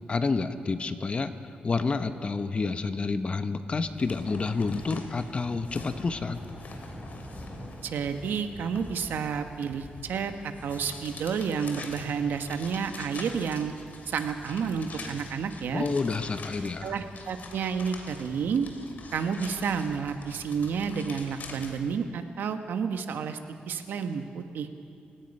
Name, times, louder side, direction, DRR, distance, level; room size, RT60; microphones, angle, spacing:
voice 1, 0.1-1.3 1.6-6.4 15.7-17.0, left 4 dB, 35° left, 10 dB, 1.0 m, -29 dB
sound 1, 3.9-22.0, left 3 dB, 60° left, 2.7 m, -45 dB
Thunder, 5.5-16.6, equal, ahead, 3.8 m, -47 dB
voice 2, 7.8-13.7 14.1-15.9 16.8-18.7 19.1-23.4 23.7-24.7, right 6 dB, 85° right, 7 dB, 1.3 m, -30 dB
29.0 x 17.0 x 5.5 m, 2.4 s
wide cardioid pair, 120°, 3 cm